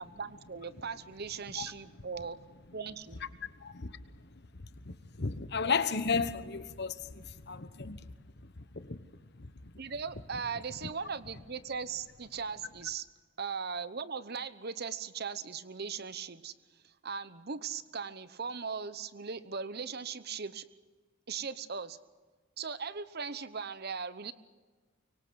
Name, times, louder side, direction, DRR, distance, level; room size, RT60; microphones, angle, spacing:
voice 1, 0.0-2.4 2.7-3.2 9.8-13.1 13.4-16.5 16.8-20.7 21.3-22.0 22.6-24.3, right 5 dB, 50° right, 0.9 m, -39 dB
voice 2, 3.4-3.9 4.9-8.0 8.7-9.0 9.4-9.7, left 5 dB, 50° left, 1.2 m, -34 dB
24.5 x 24.0 x 6.3 m
head